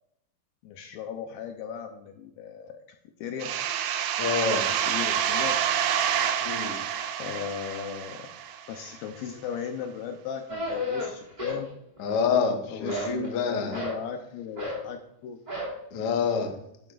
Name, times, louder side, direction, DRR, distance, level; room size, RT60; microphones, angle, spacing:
voice 1, 0.6-2.8 3.2-3.6 4.7-5.6 7.2-8.3 8.7-11.7 12.7-15.4, left 7 dB, 80° left, 5 dB, 2.3 m, -37 dB
sound 1, 3.4-8.9, right 9 dB, 80° right, 2.1 m, -28 dB
voice 2, 4.2-4.6 6.4-6.8 12.0-13.8 15.9-16.6, left 5 dB, 60° left, 3 dB, 1.6 m, -27 dB
sound 2, 10.5-11.7 12.0-12.5 12.9-14.0 14.6-14.9 15.5-15.8, left 1 dB, 15° right, 1.8 m, -33 dB
11.5 x 11.5 x 2.5 m, 0.78 s
omnidirectional pair, 4.8 m